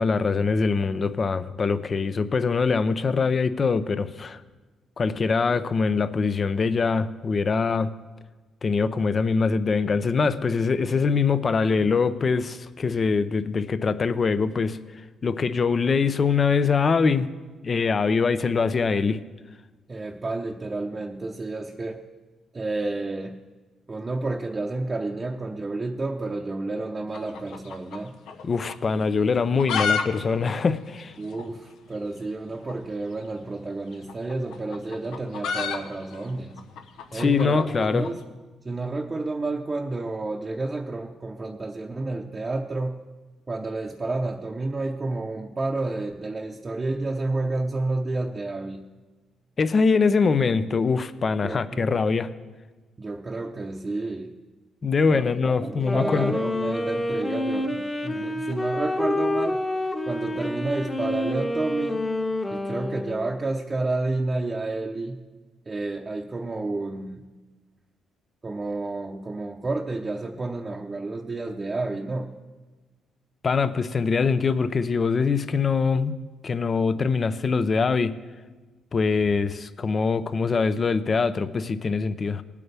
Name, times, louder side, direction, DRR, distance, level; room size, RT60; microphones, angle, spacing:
voice 1, 0.0-4.4 5.0-7.9 8.6-14.8 15.2-17.3 17.6-19.2 28.4-31.1 37.1-38.1 49.6-52.3 54.8-56.3 73.4-76.2 76.4-78.2 78.9-82.4, left 5 dB, 40° left, 13 dB, 0.6 m, -23 dB
voice 2, 19.9-22.0 22.5-23.4 23.9-28.1 31.2-36.6 37.1-38.2 38.6-43.0 43.5-48.8 51.4-51.9 53.0-54.3 55.1-55.3 55.6-59.6 60.0-62.0 62.5-65.2 65.7-67.3 68.4-72.3, right 2 dB, 30° right, 0 dB, 0.8 m, -30 dB
sound 1, 27.1-28.4 28.7-28.8 29.3-30.1 30.3-30.4 30.6-30.7 31.3-31.4 32.6-32.8 33.9-38.2, left 6 dB, 85° left, 0.9 m, -29 dB
Wind instrument woodwind instrument, 55.7-63.4, left 1 dB, 20° left, 1.2 m, -28 dB
19.5 x 8.4 x 3.4 m, 1.3 s
cardioid pair, 90°, 0 cm